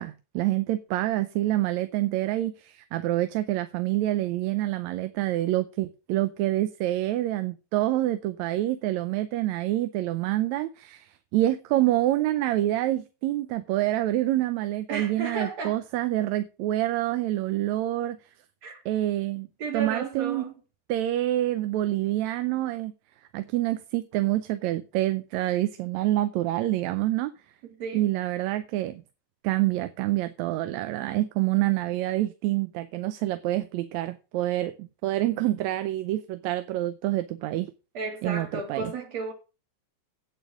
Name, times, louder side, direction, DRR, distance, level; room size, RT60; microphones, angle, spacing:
voice 1, 0.0-18.2 18.9-19.5 19.7-20.5 20.9-22.9 23.3-27.3 27.9-29.0 29.4-37.7 38.2-38.9, right 15 dB, 80° right, 1.9 m, -27 dB
voice 2, 14.9-15.8 18.6-18.8 19.6-20.5 27.6-28.0 37.9-39.3, right 4 dB, 60° right, 4.2 m, -33 dB
8.9 x 8.6 x 6.3 m
omnidirectional pair, 3.3 m